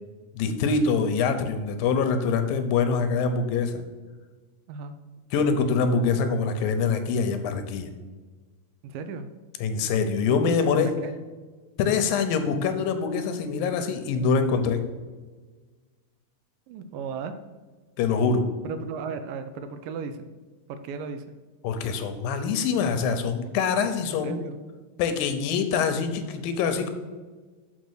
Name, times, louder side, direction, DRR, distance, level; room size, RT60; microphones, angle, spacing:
voice 1, 0.3-3.8 5.3-7.9 9.6-10.9 11.8-14.8 18.0-18.4 21.6-24.4 25.0-26.9, left 5 dB, 85° left, 8 dB, 2.6 m, -24 dB
voice 2, 8.8-9.3 10.3-11.1 16.7-17.4 18.6-20.3 20.7-21.3 24.2-24.6, right 5 dB, 80° right, 10 dB, 2.3 m, -35 dB
6.9 x 5.3 x 6.3 m, 1.4 s
omnidirectional pair, 4.0 m